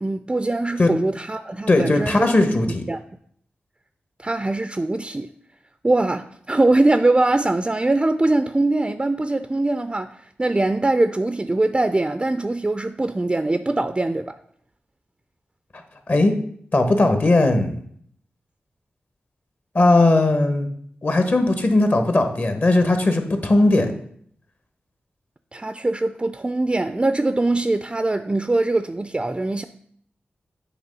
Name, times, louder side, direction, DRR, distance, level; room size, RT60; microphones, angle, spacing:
voice 1, 0.0-2.3 2.9-3.0 4.2-5.3 5.8-14.4 25.5-29.6, right 2 dB, 25° right, 0.4 m, -22 dB
voice 2, 1.7-2.8 16.1-16.3 16.7-17.7 19.7-20.7 21.0-23.9, left 2 dB, 50° left, 1.2 m, -18 dB
8.0 x 3.1 x 5.3 m
cardioid pair, 40°, 4 cm